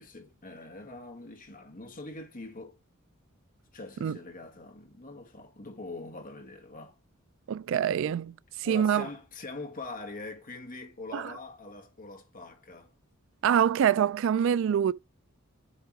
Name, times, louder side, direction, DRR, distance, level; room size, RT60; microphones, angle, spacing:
voice 1, 0.0-2.8 3.7-7.0 8.6-12.9, left 2 dB, 40° left, 1.8 m, -43 dB
voice 2, 7.5-9.0 11.1-11.3 13.4-14.9, right 8 dB, 65° right, 0.3 m, -25 dB
8.1 x 3.7 x 4.7 m
head